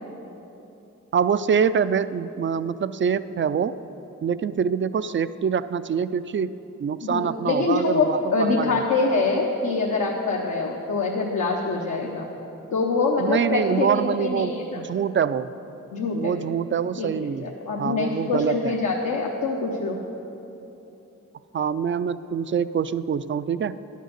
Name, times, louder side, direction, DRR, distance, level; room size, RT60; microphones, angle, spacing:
voice 1, 1.1-3.7 4.2-6.5 6.8-8.8 13.2-15.5 16.1-17.4 17.8-18.7 21.5-23.8, right 7 dB, 40° right, 15 dB, 0.4 m, -25 dB
voice 2, 7.0-12.3 12.7-14.8 15.9-16.4 17.0-20.0, left 3 dB, 80° left, -1 dB, 0.9 m, -25 dB
11.0 x 6.5 x 6.6 m, 3.0 s
cardioid pair, 50°, 31 cm